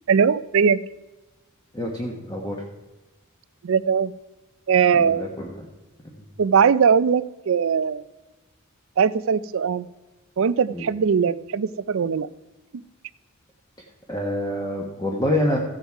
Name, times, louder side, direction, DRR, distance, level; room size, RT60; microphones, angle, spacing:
voice 1, 0.1-0.8 3.6-4.1 4.7-5.3 6.4-8.0 9.0-9.9 10.4-12.3 12.7-12.8, right 6 dB, 60° right, 17 dB, 0.4 m, -20 dB
voice 2, 1.7-2.5 4.9-5.5 10.7-10.8 14.1-15.6, left 1 dB, 20° left, -1 dB, 1.3 m, -26 dB
14.5 x 8.1 x 4.6 m, 1.1 s
head